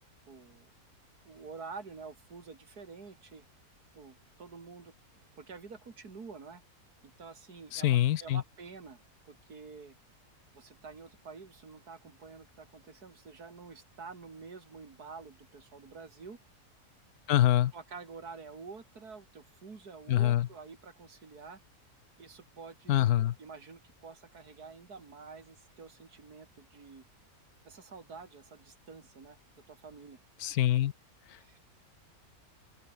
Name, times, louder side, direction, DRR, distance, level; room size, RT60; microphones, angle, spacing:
voice 1, 0.3-0.7 1.2-3.4 3.9-4.9 5.4-6.6 7.0-9.9 10.5-16.4 17.7-21.6 22.2-27.0 27.6-29.4 29.7-30.2 31.4-31.6, right 4 dB, 90° right, 3.2 m, -48 dB
voice 2, 7.7-8.4 17.3-17.7 20.1-20.5 22.9-23.3 30.4-30.9, left 12 dB, 80° left, 1.2 m, -25 dB
open air
omnidirectional pair, 1.6 m